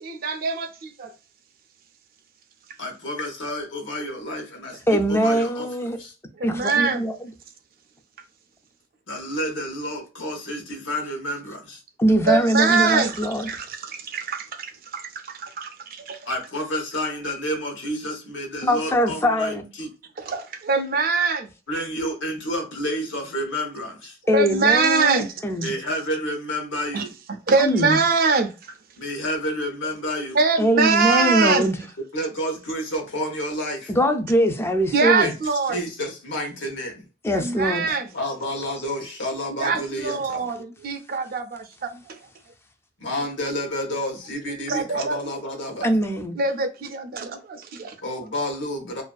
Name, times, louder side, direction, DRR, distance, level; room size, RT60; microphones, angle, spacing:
voice 1, 0.0-1.1 6.4-7.1 12.3-16.2 20.2-21.5 24.3-25.3 25.6-25.8 26.9-27.0 27.5-28.5 30.3-31.7 34.9-35.8 37.3-38.1 39.6-42.2 44.7-45.2 46.4-48.0, right 4 dB, 50° right, 0.4 m, -23 dB
voice 2, 2.8-5.7 6.0-6.1 9.1-11.8 16.2-19.9 21.7-24.2 25.6-27.1 29.0-30.4 32.1-33.9 35.2-37.0 37.9-40.5 43.0-45.9 48.0-49.0, equal, 75° left, 0.9 m, -30 dB
voice 3, 4.9-6.0 6.4-7.3 12.0-13.5 18.6-19.6 24.3-25.7 27.6-28.0 30.6-31.8 33.9-35.3 37.2-37.9 45.8-46.4, equal, 15° left, 0.3 m, -22 dB
2.5 x 2.3 x 2.2 m
head